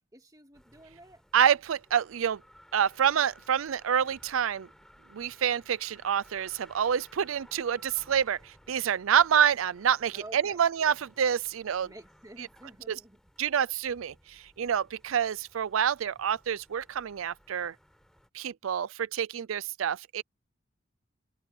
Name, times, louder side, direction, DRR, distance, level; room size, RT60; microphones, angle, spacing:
voice 1, 0.0-1.2 10.1-10.7 11.8-13.2, right 1 dB, 20° right, 1.9 m, -50 dB
sound 1, 0.5-18.3, equal, 5° left, 7.0 m, -59 dB
voice 2, 1.3-2.4 2.7-4.7 5.1-11.9 12.9-13.0 13.4-17.7 18.3-20.2, right 8 dB, 90° right, 0.4 m, -27 dB
head